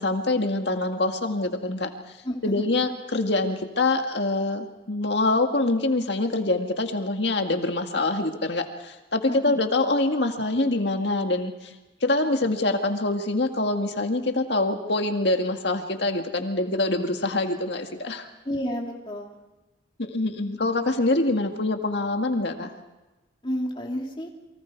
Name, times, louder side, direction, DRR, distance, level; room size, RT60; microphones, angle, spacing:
voice 1, 0.0-1.9 2.4-11.7 12.0-18.3 20.0-22.8, left 2 dB, 60° left, 5 dB, 2.0 m, -25 dB
voice 2, 2.2-2.8 9.3-9.5 18.4-19.4 23.4-24.3, equal, 25° left, 0 dB, 3.0 m, -31 dB
29.5 x 24.0 x 4.7 m, 1.1 s
head